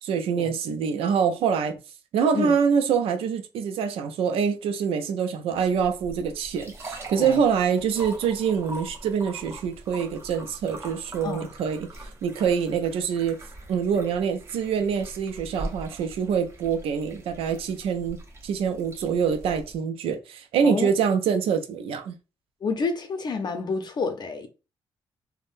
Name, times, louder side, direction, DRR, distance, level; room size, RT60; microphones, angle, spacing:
voice 1, 0.0-1.7 2.1-11.9 12.2-13.4 13.7-18.2 18.4-22.1, right 7 dB, 90° right, 0.5 m, -25 dB
sound 1, 5.5-19.8, right 1 dB, 30° right, 0.8 m, -42 dB
voice 2, 22.6-24.5, left 4 dB, 50° left, 0.6 m, -29 dB
3.5 x 2.1 x 2.5 m
cardioid pair, 85°, 9 cm